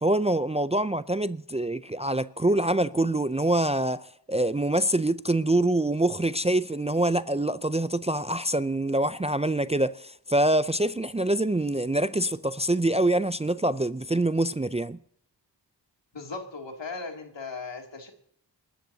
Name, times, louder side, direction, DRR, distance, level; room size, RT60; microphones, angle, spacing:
voice 1, 0.0-15.0, right 1 dB, 15° right, 0.5 m, -25 dB
voice 2, 16.1-18.1, left 4 dB, 75° left, 2.8 m, -37 dB
28.0 x 13.0 x 2.8 m
wide cardioid pair, 60°, 45 cm